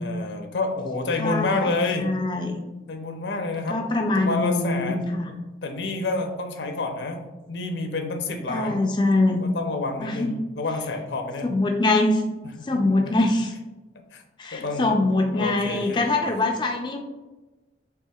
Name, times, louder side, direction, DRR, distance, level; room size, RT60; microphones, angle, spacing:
voice 1, 0.0-2.1 2.9-7.2 7.5-8.8 9.4-11.5 12.6-13.2 14.1-14.2 14.5-15.0 15.3-16.3, left 3 dB, 80° left, 5 dB, 0.6 m, -29 dB
voice 2, 1.2-1.7 2.0-2.6 3.7-5.3 8.5-9.4 10.0-10.4 11.4-12.2 12.6-13.5 14.4-17.0, left 2 dB, 25° left, 2 dB, 0.3 m, -23 dB
5.5 x 3.6 x 2.3 m, 1.2 s
head